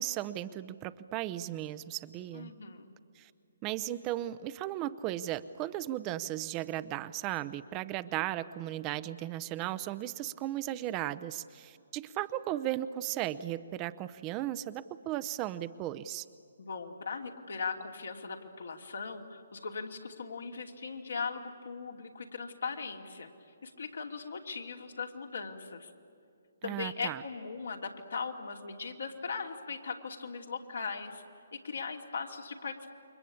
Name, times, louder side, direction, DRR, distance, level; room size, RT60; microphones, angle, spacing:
voice 1, 0.0-2.5 3.2-3.3 3.6-16.3 26.6-27.2, right 14 dB, 25° right, 14 dB, 0.7 m, -36 dB
voice 2, 2.3-2.9 16.6-23.3 23.6-25.9 26.6-31.2 31.5-32.9, left 5 dB, 75° left, 3 dB, 2.8 m, -39 dB
29.0 x 23.5 x 8.6 m, 2.4 s
figure-of-eight pair, 140°, 0 cm